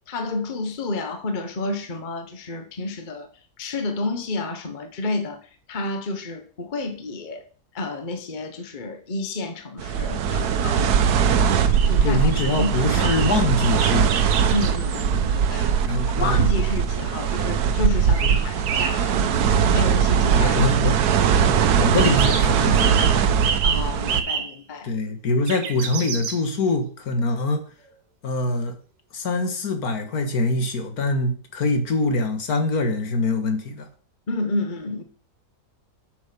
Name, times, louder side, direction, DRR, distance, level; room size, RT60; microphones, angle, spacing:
voice 1, 0.1-3.3 3.6-5.4 5.7-7.4 7.7-11.0 11.8-13.2 14.5-15.8 16.1-19.4 19.7-20.6 23.6-24.9 34.3-35.0, left 2 dB, 35° left, 1.1 m, -30 dB
sound 1, 9.8-24.2, right 7 dB, 75° right, 1.3 m, -20 dB
sound 2, 11.7-11.9 12.3-12.7 13.0-15.1 18.1-19.0 22.0-22.5 22.8-24.5 25.5-26.4, right 6 dB, 90° right, 1.8 m, -29 dB
voice 2, 12.0-14.1 15.8-16.5 18.2-18.5 20.4-21.0 21.4-23.1 24.8-27.6 28.2-28.7 29.1-33.9, left 2 dB, 65° left, 1.9 m, -24 dB
8.3 x 6.4 x 5.1 m
omnidirectional pair, 1.7 m